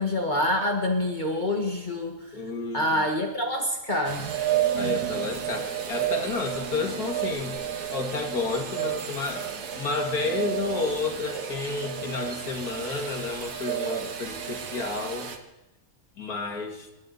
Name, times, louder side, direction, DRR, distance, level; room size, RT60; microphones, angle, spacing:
voice 1, 0.0-2.4 2.7-4.3, left 1 dB, 30° left, 2 dB, 1.6 m, -26 dB
voice 2, 2.3-3.1 4.8-7.6 7.9-15.3 16.2-16.9, left 3 dB, 75° left, 2 dB, 2.5 m, -31 dB
sound 1, 4.0-15.4, right 9 dB, 80° right, 1.7 m, -31 dB
26.5 x 11.5 x 4.0 m, 0.96 s
omnidirectional pair, 1.6 m